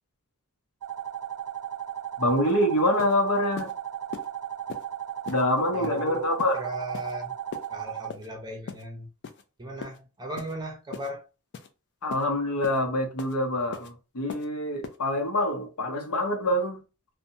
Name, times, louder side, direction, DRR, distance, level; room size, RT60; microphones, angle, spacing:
sound 1, 0.8-8.1, right 10 dB, 80° right, 0.5 m, -36 dB
voice 1, 2.2-3.7 5.3-6.6 12.0-16.8, left 1 dB, 85° left, 0.8 m, -26 dB
sound 2, 2.5-2.6 3.0-3.1 3.6-3.7 4.1-4.3 4.7-4.8 5.3-5.4 5.8-6.0 6.4-6.5 6.9-7.1 7.5-7.7 8.1-8.3 8.7-8.8 9.2-9.4 9.8-10.0 10.4-10.5 10.9-11.1 11.5-11.7 12.1-12.2 12.6-12.8 13.2-13.3 13.7-13.9 14.3-14.5 14.8-15.0, left 5 dB, 50° left, 0.4 m, -39 dB
voice 2, 5.7-6.3 6.5-7.4 7.7-9.1 9.6-11.3, right 1 dB, 20° right, 0.6 m, -37 dB
2.7 x 2.2 x 2.6 m
head